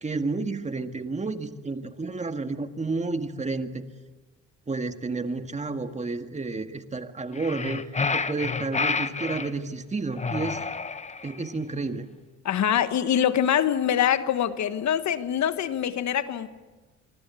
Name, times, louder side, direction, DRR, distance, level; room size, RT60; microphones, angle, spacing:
voice 1, 0.0-3.8 4.7-10.6 11.2-12.1, right 3 dB, 25° right, 7 dB, 1.9 m, -31 dB
sound 1, 7.3-9.5 10.2-11.4, left 4 dB, 25° left, 1.1 m, -29 dB
voice 2, 12.4-16.5, left 9 dB, 65° left, 12 dB, 1.3 m, -24 dB
25.0 x 24.5 x 8.3 m, 1.3 s
cardioid pair, 90°, 30 cm